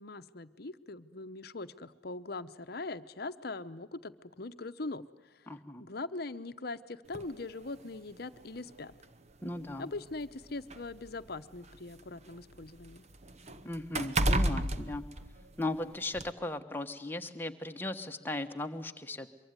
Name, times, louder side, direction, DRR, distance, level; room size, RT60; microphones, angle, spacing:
voice 1, 0.0-5.5 5.8-8.9 9.8-13.0, left 3 dB, 55° left, 10 dB, 0.9 m, -41 dB
voice 2, 5.5-5.8 9.4-9.9 13.6-15.0 15.6-19.3, left 2 dB, 10° left, 5 dB, 1.3 m, -37 dB
sound 1, 7.1-7.3 8.4-8.5 8.9-9.0 10.0-12.0 12.3-15.8 16.2-16.3, right 1 dB, 35° right, 1.0 m, -32 dB
24.0 x 23.5 x 9.6 m, 1.0 s
head